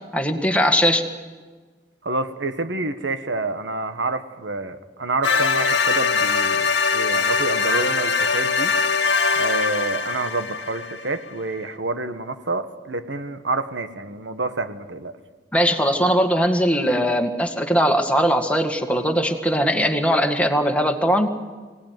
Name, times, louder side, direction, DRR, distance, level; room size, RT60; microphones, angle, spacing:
voice 1, 0.1-1.0 15.5-21.3, equal, 5° left, 4 dB, 1.8 m, -20 dB
voice 2, 2.0-8.7 9.3-15.1, right 2 dB, 80° right, 9 dB, 1.5 m, -28 dB
sound 1, 5.2-11.1, left 5 dB, 70° left, 1.7 m, -22 dB
25.0 x 17.5 x 9.4 m, 1.4 s
head